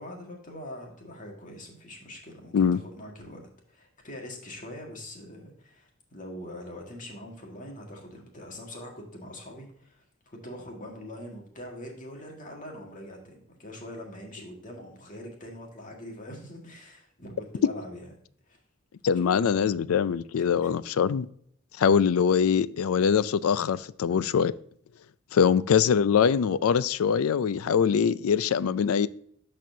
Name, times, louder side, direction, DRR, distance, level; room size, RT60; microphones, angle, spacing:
voice 1, 0.0-18.1 18.5-18.6 19.1-19.6 20.6-20.7 25.4-25.6, left 1 dB, 40° left, 1.9 m, -43 dB
voice 2, 19.0-21.3 21.8-24.5 25.3-29.1, left 7 dB, 85° left, 0.4 m, -23 dB
12.5 x 4.3 x 2.7 m
head